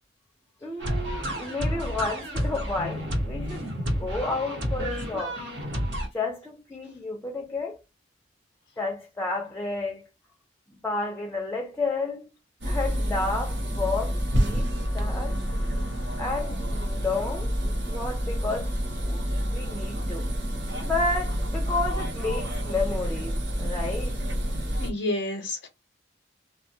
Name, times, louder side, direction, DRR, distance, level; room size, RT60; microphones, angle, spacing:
voice 1, 0.6-5.4 6.1-7.8 8.8-10.1 10.7-12.3 12.6-15.4 16.2-17.5 17.9-18.7 19.0-20.3 20.8-24.2, left 3 dB, 10° left, 0.4 m, -31 dB
sound 1, 0.8-6.1, equal, 85° right, 1.1 m, -30 dB
sound 2, 12.6-24.9, equal, 65° right, 0.7 m, -28 dB
voice 2, 24.8-25.7, left 2 dB, 80° left, 0.5 m, -29 dB
2.3 x 2.2 x 2.6 m
head